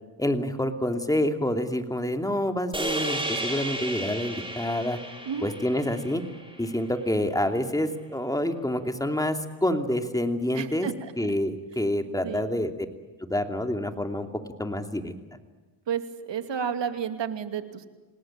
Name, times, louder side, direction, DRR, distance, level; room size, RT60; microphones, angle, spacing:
voice 1, 0.2-5.0 5.4-6.2 6.6-10.9 11.2-12.7 13.2-14.3 14.6-15.1, left 1 dB, 5° left, 6 dB, 2.7 m, -27 dB
sound 1, 2.7-7.1, right 1 dB, 10° right, 6.6 m, -33 dB
voice 2, 10.5-11.1 12.2-12.4 15.9-17.8, right 7 dB, 65° right, 8 dB, 2.6 m, -31 dB
27.5 x 19.0 x 9.1 m, 1.3 s
cardioid pair, 85°, 47 cm